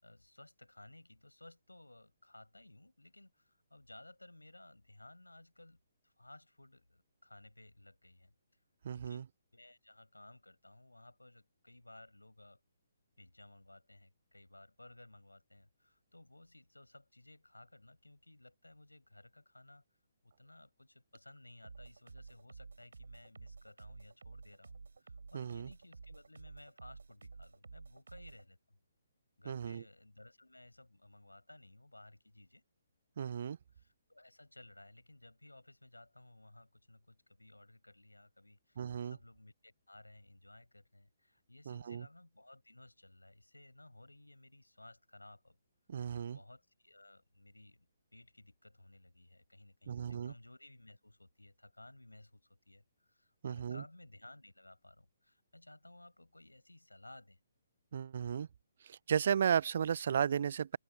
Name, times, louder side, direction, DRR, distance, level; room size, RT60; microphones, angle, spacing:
voice 1, 0.0-8.3 8.9-9.3 9.5-12.6 13.2-19.8 20.2-28.8 29.4-32.6 33.7-45.6 46.2-57.4, left 1 dB, 85° left, 5.8 m, -58 dB
voice 2, 8.8-9.2 25.3-25.7 29.5-29.8 33.2-33.6 38.8-39.2 41.7-42.0 45.9-46.4 49.9-50.3 53.4-53.8 57.9-58.5 58.8-60.8, right 8 dB, 50° right, 0.3 m, -34 dB
sound 1, 21.6-28.5, right 4 dB, 65° right, 3.9 m, -52 dB
figure-of-eight pair, 135°, 0 cm